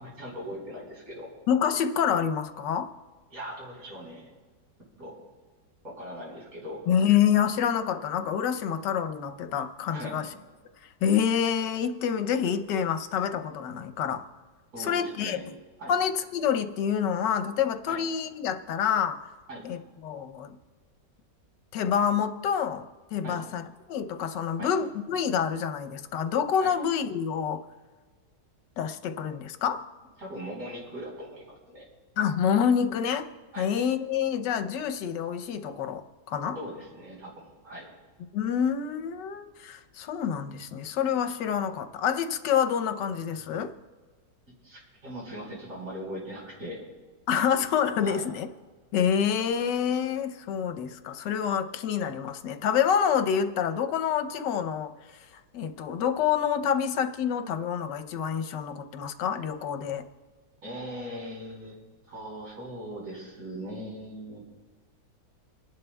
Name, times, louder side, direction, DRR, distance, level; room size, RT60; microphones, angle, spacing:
voice 1, 0.0-1.3 3.3-4.3 5.0-5.1 5.8-6.8 9.9-10.3 14.7-15.4 15.8-15.9 17.9-18.0 19.5-19.7 23.2-23.4 24.6-24.7 26.6-26.7 30.2-31.9 33.5-33.7 36.5-37.9 44.6-46.8 48.0-48.2 60.6-61.8 62.1-64.4, equal, 55° right, -4 dB, 4.9 m, -40 dB
voice 2, 1.5-2.9 6.9-10.3 11.0-14.2 14.8-15.4 15.9-19.2 19.6-20.6 21.7-22.9 23.1-23.6 23.9-27.6 28.8-29.8 32.2-33.3 33.6-36.6 38.3-43.7 47.3-48.5 48.9-54.9 55.5-60.0, left 8 dB, 85° left, 8 dB, 1.4 m, -27 dB
29.0 x 11.5 x 2.3 m, 1.4 s
omnidirectional pair, 1.9 m